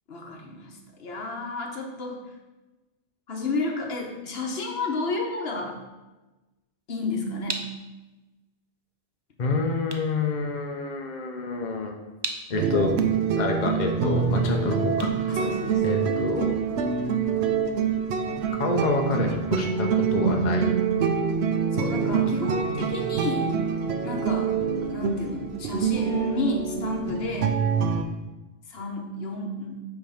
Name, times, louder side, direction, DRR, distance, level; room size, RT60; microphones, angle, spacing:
voice 1, 0.1-2.2 3.3-5.8 6.9-7.7 15.3-15.8 21.7-23.6 24.0-24.5 24.8-27.6 28.7-29.8, left 2 dB, 75° left, 2 dB, 1.3 m, -31 dB
sound 1, 6.8-16.2, right 3 dB, 30° right, 0.5 m, -41 dB
voice 2, 9.4-11.9 12.5-13.0 13.4-15.1 15.8-16.6 18.6-20.7, left 3 dB, 50° left, 2 dB, 0.8 m, -27 dB
sound 2, 12.5-28.0, right 6 dB, 90° right, 0.9 m, -25 dB
7.8 x 3.5 x 5.7 m, 1.1 s
omnidirectional pair, 1.1 m